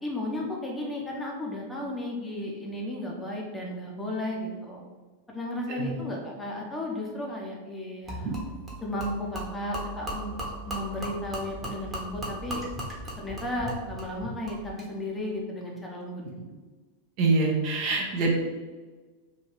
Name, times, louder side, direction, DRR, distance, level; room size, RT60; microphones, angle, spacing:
voice 1, 0.0-4.8 5.3-8.4 8.8-10.4 10.6-12.6 13.2-16.2, left 1 dB, 10° left, -2 dB, 0.8 m, -34 dB
Gurgling / Liquid, 8.1-14.9, right 1 dB, 20° right, 1.2 m, -37 dB
voice 2, 17.2-18.3, right 3 dB, 45° right, -1 dB, 0.8 m, -25 dB
3.1 x 2.7 x 4.4 m, 1.3 s
figure-of-eight pair, 90°, 0 cm